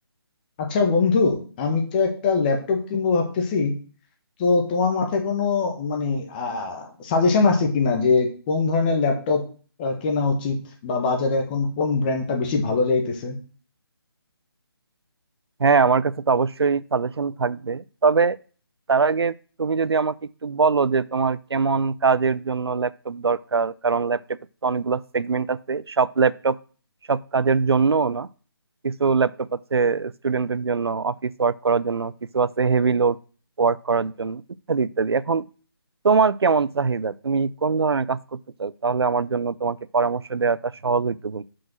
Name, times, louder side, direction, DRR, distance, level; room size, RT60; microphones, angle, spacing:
voice 1, 0.6-3.8 4.4-9.5 9.8-13.4, left 4 dB, 25° left, 3 dB, 1.3 m, -22 dB
voice 2, 15.6-18.4 18.9-20.2 20.4-24.2 24.6-26.6 27.1-28.3 28.8-33.2 33.6-34.4 34.7-35.4 36.0-41.4, right 5 dB, 85° right, 18 dB, 0.5 m, -22 dB
5.7 x 5.2 x 6.0 m, 0.39 s
figure-of-eight pair, 155°, 13 cm